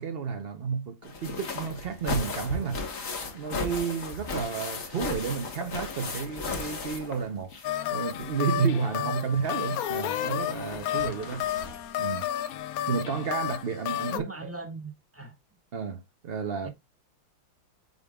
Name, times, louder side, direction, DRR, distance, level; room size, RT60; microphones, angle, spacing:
voice 1, 0.0-2.8 3.3-7.6 7.9-11.5 12.0-12.3 12.9-14.5 15.7-16.7, right 6 dB, 80° right, 0.5 m, -31 dB
sound 1, 1.0-7.8 8.1-12.0 13.1-13.2 13.5-13.6, left 3 dB, 45° left, 1.8 m, -36 dB
sound 2, 7.6-14.2, left 11 dB, 70° left, 0.9 m, -32 dB
voice 2, 8.8-9.3 11.0-11.3 14.1-15.3 16.6-16.7, right 3 dB, 10° right, 1.4 m, -40 dB
7.8 x 5.2 x 2.3 m
omnidirectional pair, 2.0 m